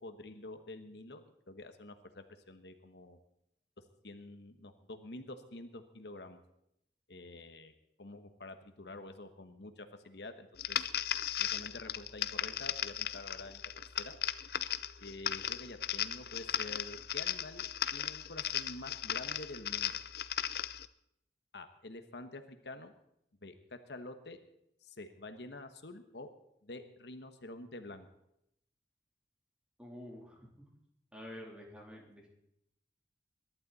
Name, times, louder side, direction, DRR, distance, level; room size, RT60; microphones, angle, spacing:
voice 1, 0.0-3.2 4.0-6.4 7.1-7.7 8.0-10.8 11.4-13.6 14.0-14.1 15.0-17.6 17.9-20.0 21.5-22.9 23.4-24.4 24.8-26.3 26.6-28.1, left 2 dB, 80° left, 8 dB, 1.2 m, -48 dB
sound 1, 10.6-20.9, left 10 dB, 60° left, 0.6 m, -36 dB
voice 2, 29.8-30.5 31.1-32.3, left 1 dB, 5° right, -2 dB, 3.3 m, -48 dB
22.5 x 11.5 x 4.1 m, 0.79 s
head